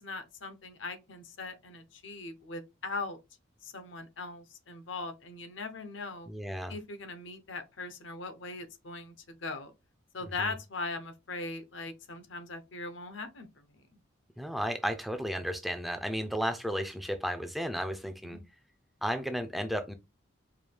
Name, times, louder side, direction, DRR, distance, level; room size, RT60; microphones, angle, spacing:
voice 1, 0.0-3.2 3.6-6.3 6.7-9.7 10.1-13.6 18.2-18.4, left 3 dB, 75° left, 0.7 m, -40 dB
voice 2, 6.3-6.7 10.4-10.5 14.4-18.4 19.0-19.9, equal, ahead, 0.3 m, -33 dB
4.7 x 2.3 x 3.4 m
head